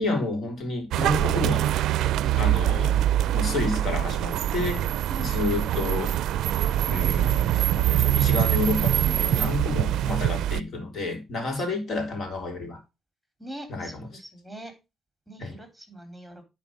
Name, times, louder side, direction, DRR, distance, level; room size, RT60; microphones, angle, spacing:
voice 1, 0.0-1.6 2.4-3.0 3.3-4.9 5.2-6.2 6.9-7.4 7.8-12.8 13.7-14.1 15.4-15.6, left 3 dB, 55° left, 3.5 m, -30 dB
sound 1, 0.9-10.6, right 12 dB, 85° right, 0.4 m, -24 dB
voice 2, 5.1-5.5 9.0-9.6 11.4-11.6 13.4-14.7 15.3-16.4, right 1 dB, ahead, 3.9 m, -42 dB
10.5 x 4.3 x 5.1 m
cardioid pair, 90°, 0 cm